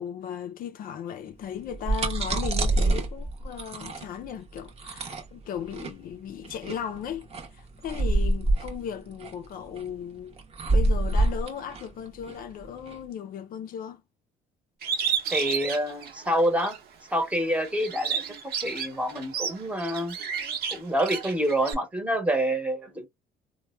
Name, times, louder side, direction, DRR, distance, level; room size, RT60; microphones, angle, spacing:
voice 1, 0.0-10.4 10.7-14.0, left 8 dB, 60° left, 0.4 m, -36 dB
sound 1, 1.6-13.0, right 2 dB, 35° right, 0.8 m, -27 dB
Bird, 14.8-16.8 17.2-21.7, right 7 dB, 65° right, 0.9 m, -31 dB
voice 2, 15.3-16.8 17.1-20.2 20.7-23.1, right 1 dB, 10° right, 0.9 m, -27 dB
3.2 x 2.1 x 2.2 m
cardioid pair, 110°, 17 cm